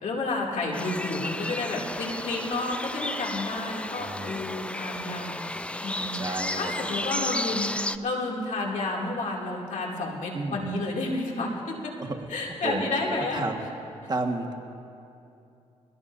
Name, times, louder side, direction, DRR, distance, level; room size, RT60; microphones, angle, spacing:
voice 1, 0.0-5.4 5.8-6.2 6.6-7.7 8.0-13.4, left 2 dB, 70° left, -2 dB, 2.6 m, -31 dB
sound 1, 0.7-8.0, left 1 dB, 10° left, 0.5 m, -33 dB
voice 2, 4.0-4.5 6.1-6.9 10.3-10.6 12.0-12.3 12.6-12.9 13.3-13.6 14.1-14.5, right 2 dB, 30° right, 3 dB, 1.6 m, -32 dB
23.5 x 17.5 x 2.7 m, 2.7 s
cardioid pair, 70°, 13 cm